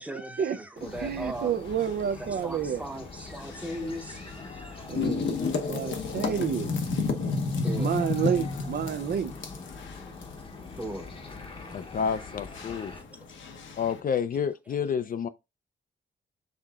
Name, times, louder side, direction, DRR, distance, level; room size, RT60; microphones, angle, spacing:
voice 1, 0.0-1.5 2.2-5.0 7.6-8.0 10.8-11.1, right 1 dB, 5° right, 0.7 m, -38 dB
sound 1, 0.8-14.0, left 4 dB, 75° left, 0.9 m, -34 dB
sound 2, 0.8-13.0, left 4 dB, 30° left, 0.8 m, -44 dB
voice 2, 1.0-2.8 3.8-4.0 4.9-5.3 5.7-6.7 7.8-9.3, right 8 dB, 55° right, 0.4 m, -29 dB
voice 3, 11.7-13.0 13.8-15.3, left 7 dB, 45° left, 0.4 m, -29 dB
5.6 x 3.6 x 2.3 m
wide cardioid pair, 135°, 19 cm